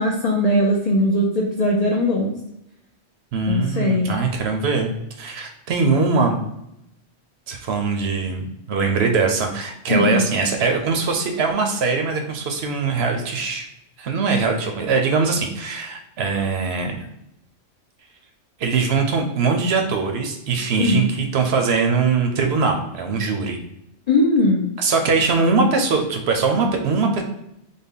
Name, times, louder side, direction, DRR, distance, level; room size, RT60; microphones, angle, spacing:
voice 1, 0.0-2.3 3.5-4.1 9.9-10.3 20.8-21.0 24.1-24.7, left 1 dB, 55° left, -2 dB, 0.4 m, -19 dB
voice 2, 3.3-4.9 5.2-6.4 7.5-13.6 14.0-17.1 18.6-23.6 24.8-27.2, right 4 dB, 65° right, 4 dB, 0.8 m, -21 dB
3.5 x 2.1 x 3.6 m, 0.83 s
omnidirectional pair, 1.3 m